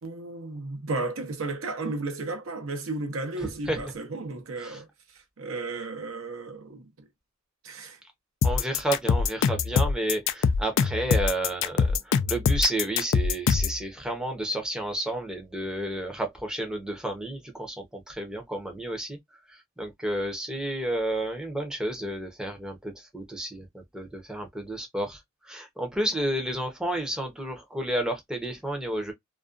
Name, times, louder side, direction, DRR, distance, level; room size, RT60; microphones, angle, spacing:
voice 1, 0.0-4.9 5.1-6.9 7.6-8.0, right 3 dB, 80° right, 0.7 m, -34 dB
sound 1, 8.4-13.8, left 6 dB, 65° left, 0.3 m, -23 dB
voice 2, 8.4-19.2 19.8-25.2 25.4-29.1, right 1 dB, 5° right, 0.6 m, -31 dB
2.4 x 2.2 x 2.4 m
head